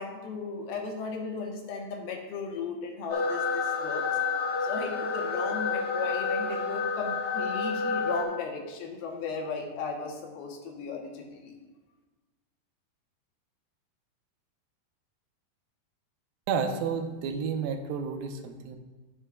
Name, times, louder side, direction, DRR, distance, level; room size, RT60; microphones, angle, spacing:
voice 1, 0.0-4.1 4.6-11.6, left 4 dB, 75° left, 1 dB, 2.9 m, -36 dB
sound 1, 3.1-8.2, left 4 dB, 50° left, 2.2 m, -29 dB
voice 2, 16.5-18.8, right 6 dB, 75° right, 5 dB, 2.4 m, -31 dB
12.0 x 9.8 x 2.3 m, 1.2 s
omnidirectional pair, 4.6 m